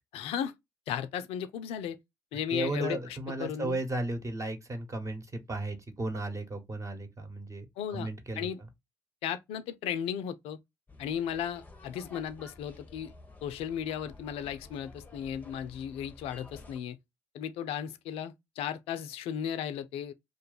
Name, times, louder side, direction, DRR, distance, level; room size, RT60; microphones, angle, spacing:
voice 1, 0.1-0.5 0.9-2.0 2.3-3.0 3.4-3.8 7.8-8.1 8.4-8.6 9.2-10.6 11.0-13.1 13.4-17.0 17.3-20.1, left 9 dB, 65° left, 0.4 m, -35 dB
voice 2, 2.5-7.7 7.9-8.5, right 2 dB, 30° right, 1.1 m, -35 dB
sound 1, 10.9-16.8, left 2 dB, 15° left, 0.7 m, -52 dB
2.5 x 2.2 x 3.9 m
hypercardioid pair, 50°, 11 cm